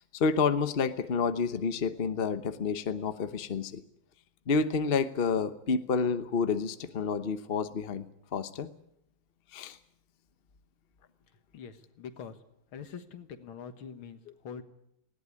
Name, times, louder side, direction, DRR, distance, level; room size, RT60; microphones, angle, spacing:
voice 1, 0.1-3.8 4.5-8.0 8.3-8.7 9.5-9.8, left 5 dB, 40° left, 11 dB, 0.9 m, -29 dB
voice 2, 11.5-12.4 12.7-14.6, left 7 dB, 80° left, 10 dB, 2.3 m, -44 dB
19.5 x 17.0 x 9.7 m, 0.78 s
omnidirectional pair, 2.2 m